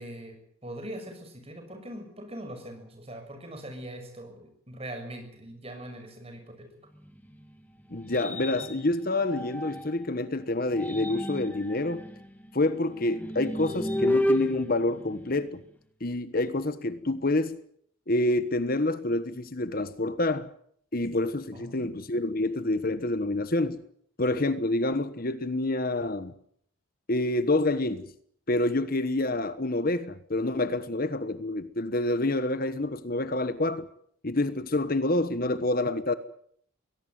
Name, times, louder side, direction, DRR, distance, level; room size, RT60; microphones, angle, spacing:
voice 1, 0.0-6.7 21.5-21.9, right 1 dB, 30° right, 6.5 m, -42 dB
sound 1, 6.9-10.1 10.6-15.8, left 1 dB, 10° left, 2.0 m, -33 dB
voice 2, 7.9-12.0 12.5-15.6 16.0-17.6 18.1-20.5 20.9-23.8 24.2-26.3 27.1-28.1 28.5-33.9 34.2-36.1, left 2 dB, 45° left, 1.2 m, -27 dB
23.0 x 18.0 x 9.3 m
head